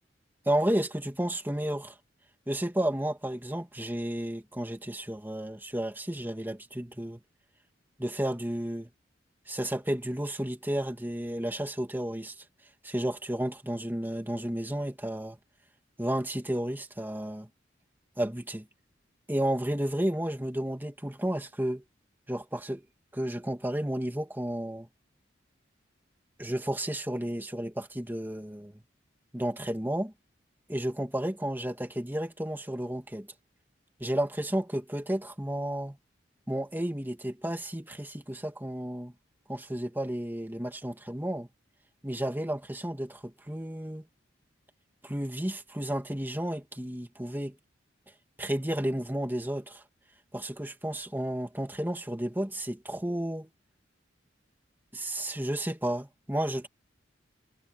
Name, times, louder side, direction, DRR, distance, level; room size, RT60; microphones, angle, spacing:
voice 1, 0.5-1.9 2.5-7.2 8.0-8.9 9.5-12.4 12.8-15.4 16.0-17.5 18.2-18.7 19.3-21.8 22.3-22.8 23.1-24.9 26.4-28.8 29.3-30.1 30.7-33.3 34.0-36.0 36.5-39.1 39.5-41.5 42.0-44.1 45.0-47.6 48.4-49.8 50.3-53.5 54.9-56.7, right 1 dB, 10° right, 2.3 m, -32 dB
head